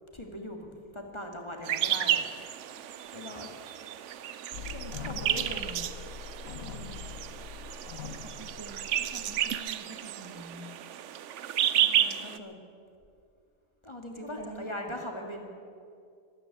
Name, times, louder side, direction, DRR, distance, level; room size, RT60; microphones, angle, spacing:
voice 1, 0.1-2.2 3.1-3.5 5.1-5.7 6.4-7.0 11.8-12.5 13.8-15.5, left 1 dB, 20° left, 2 dB, 1.7 m, -40 dB
sound 1, 1.6-12.4, right 10 dB, 65° right, 0.8 m, -32 dB
sound 2, 4.5-9.6, left 7 dB, 70° left, 1.2 m, -43 dB
voice 2, 4.6-5.9 8.0-10.7 14.2-15.0, right 2 dB, 20° right, 2 dB, 0.8 m, -46 dB
13.0 x 13.0 x 8.5 m, 2.4 s
omnidirectional pair, 1.7 m